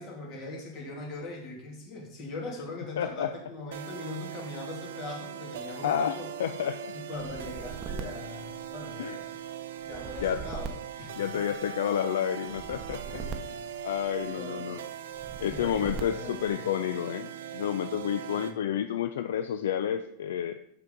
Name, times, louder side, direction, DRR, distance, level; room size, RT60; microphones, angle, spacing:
voice 1, 0.0-6.3 6.9-9.4 9.8-10.7 11.0-11.4 13.0-13.7 14.2-14.8 15.3-16.6 18.3-18.7, left 2 dB, 50° left, -2 dB, 2.6 m, -41 dB
voice 2, 3.0-3.3 5.8-6.9 9.0-9.2 10.2-10.4 11.2-13.2 13.8-14.8 15.4-20.6, left 9 dB, 80° left, 9 dB, 0.3 m, -30 dB
sound 1, 3.7-18.5, right 9 dB, 75° right, 0.5 m, -41 dB
sound 2, 7.1-9.1 9.8-11.8 12.5-14.4 15.1-16.5, right 5 dB, 35° right, 0.7 m, -41 dB
5.8 x 5.6 x 3.9 m, 0.74 s
hypercardioid pair, 110°, 0 cm